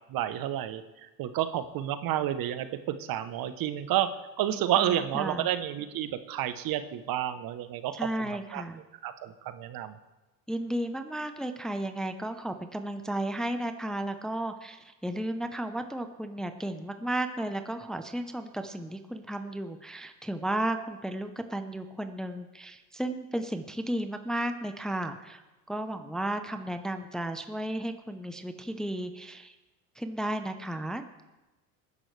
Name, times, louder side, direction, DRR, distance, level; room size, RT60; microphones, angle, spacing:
voice 1, 0.1-0.8 1.2-4.1 4.4-8.0 8.5-8.6 9.0-9.9, right 11 dB, 45° right, 11 dB, 1.0 m, -30 dB
voice 2, 4.5-5.5 8.0-8.8 10.5-25.4 25.7-29.5 30.0-31.0, right 1 dB, ahead, 7 dB, 0.7 m, -34 dB
19.5 x 11.0 x 3.3 m, 1.1 s
hypercardioid pair, 90°, 47 cm